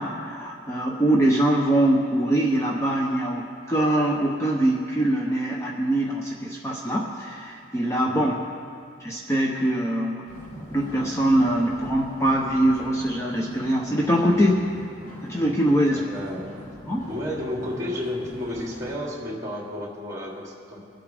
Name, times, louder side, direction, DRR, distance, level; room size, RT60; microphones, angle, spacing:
voice 1, 0.0-8.4 9.0-10.3 10.7-14.6 15.2-16.0 16.9-17.1, right 1 dB, 15° left, -2 dB, 0.8 m, -23 dB
sound 1, 10.3-19.0, equal, 45° left, 2.5 m, -43 dB
voice 2, 15.9-16.6 17.1-20.8, left 1 dB, 20° right, -3 dB, 2.7 m, -32 dB
24.0 x 8.4 x 3.5 m, 2.3 s
head